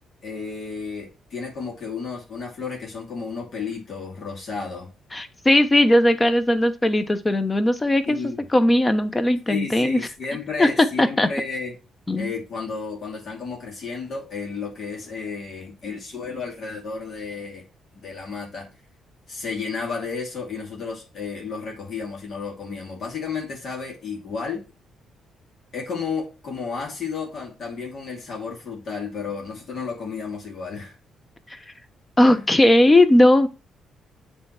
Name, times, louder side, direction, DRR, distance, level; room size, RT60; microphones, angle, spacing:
voice 1, 0.2-4.9 8.1-8.5 9.5-11.7 12.2-17.7 17.9-18.7 19.3-24.6 25.7-30.9 32.3-32.5, left 5 dB, 55° left, 2.5 m, -32 dB
voice 2, 5.1-8.2 8.5-10.0 10.6-10.7 11.0-11.3 12.1-12.3 31.5-31.6 32.2-33.5, left 1 dB, 20° left, 0.9 m, -18 dB
7.6 x 3.5 x 5.8 m
cardioid pair, 90°, 0 cm